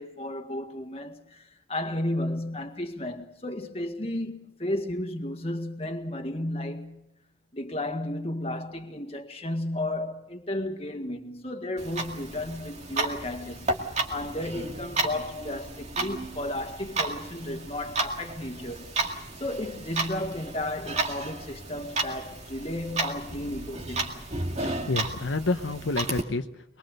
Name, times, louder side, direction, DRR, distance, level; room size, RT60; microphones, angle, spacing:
voice 1, 0.0-7.1 7.5-18.9 19.4-24.2, left 1 dB, 30° left, 1.8 m, -33 dB
Clock, 11.8-26.2, right 2 dB, 35° right, 2.2 m, -33 dB
voice 2, 24.6-26.8, left 3 dB, 90° left, 1.0 m, -29 dB
23.0 x 22.5 x 6.7 m
head